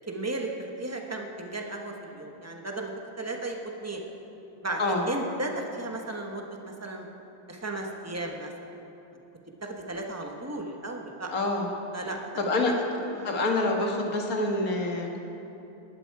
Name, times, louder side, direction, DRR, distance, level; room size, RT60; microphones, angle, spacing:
voice 1, 0.1-0.5 0.8-2.9 3.2-4.0 4.6-4.8 5.1-7.1 7.5-8.5 9.6-11.3 11.9-12.2 12.7-12.8 13.1-13.4, right 2 dB, 15° right, 2 dB, 0.5 m, -35 dB
voice 2, 11.3-11.7 12.4-15.2, left 2 dB, 45° left, 1 dB, 1.8 m, -27 dB
19.0 x 12.0 x 4.7 m, 3.0 s
omnidirectional pair, 2.3 m